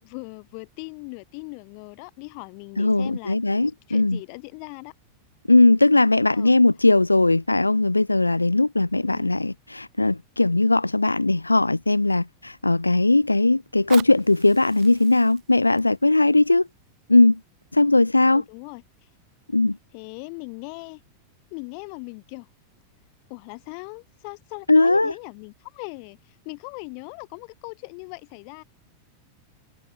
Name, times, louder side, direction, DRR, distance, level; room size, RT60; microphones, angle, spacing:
voice 1, 0.0-3.4 3.9-4.9 6.3-6.5 9.0-9.3 18.2-19.1 19.9-21.0 21.5-22.5 23.3-28.6, left 40 dB or more, 45° left, 2.8 m, -39 dB
voice 2, 2.8-4.2 5.5-16.7 17.1-17.4 17.7-18.4 19.5-19.8 24.7-25.1, left 2 dB, 85° left, 0.4 m, -19 dB
Fire, 13.6-18.6 19.2-19.3, right 22 dB, 40° right, 6.6 m, -45 dB
figure-of-eight pair, 90°, 0 cm